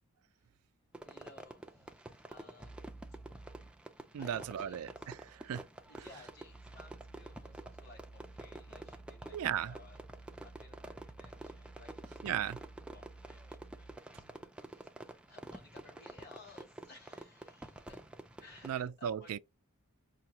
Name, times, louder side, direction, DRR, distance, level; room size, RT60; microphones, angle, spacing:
Fireworks, 0.9-18.8, right 1 dB, 5° right, 0.4 m, -50 dB
voice 1, 1.0-3.0 4.0-5.1 5.9-9.4 9.6-12.3 12.9-18.0 18.4-19.3, left 3 dB, 50° left, 2.5 m, -59 dB
sound 1, 2.6-3.8 4.2-14.0, right 2 dB, 75° left, 2.3 m, -54 dB
voice 2, 4.1-5.6 6.0-6.1 9.3-9.8 12.2-12.6 18.6-19.4, right 9 dB, 80° right, 0.3 m, -36 dB
5.6 x 2.3 x 2.8 m
head